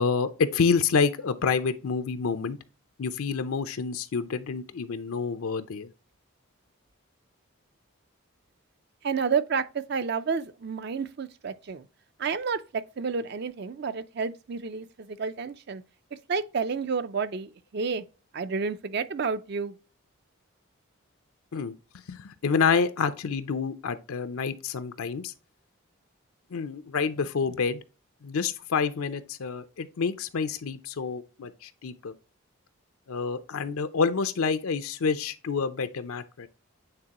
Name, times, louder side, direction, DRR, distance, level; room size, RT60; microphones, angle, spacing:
voice 1, 0.0-2.6 3.0-5.9 21.5-21.7 22.1-25.3 26.5-27.8 28.2-32.1 33.1-36.5, left 5 dB, 80° left, 0.5 m, -28 dB
voice 2, 9.0-11.9 12.2-15.8 16.3-18.0 18.3-19.8, right 5 dB, 50° right, 0.4 m, -30 dB
8.8 x 3.8 x 2.9 m
head